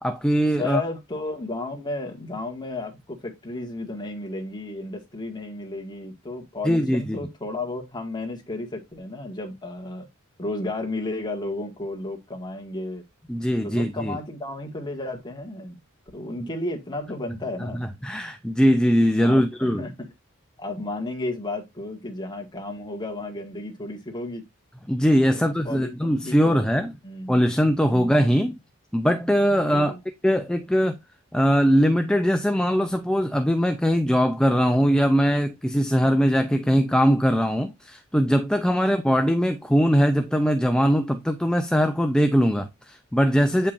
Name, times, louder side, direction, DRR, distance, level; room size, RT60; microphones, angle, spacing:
voice 1, 0.0-0.8 6.6-7.2 13.3-14.2 17.7-19.8 24.9-26.9 27.3-28.6 28.9-30.0 30.2-31.0 31.3-43.7, equal, 5° left, 0.6 m, -21 dB
voice 2, 0.6-10.1 10.4-13.0 13.6-15.8 16.1-17.8 19.2-20.1 20.6-24.4 25.3-26.6 27.0-27.4 27.9-28.3 29.5-30.0 38.7-39.1 43.6-43.7, left 2 dB, 20° left, 2.0 m, -33 dB
8.5 x 5.5 x 2.6 m
head